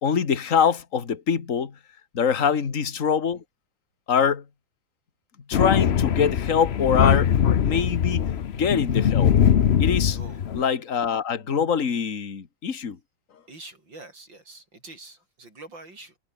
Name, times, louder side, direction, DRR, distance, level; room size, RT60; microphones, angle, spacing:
voice 1, 0.0-1.7 2.1-3.4 4.1-4.4 5.5-7.3 7.6-9.3 9.8-10.2 10.5-13.0, left 7 dB, 40° left, 2.2 m, -24 dB
Thunder, 5.5-10.6, left 8 dB, 60° left, 0.6 m, -21 dB
voice 2, 10.1-10.5 13.5-16.2, right 2 dB, 65° right, 7.7 m, -45 dB
omnidirectional pair, 2.2 m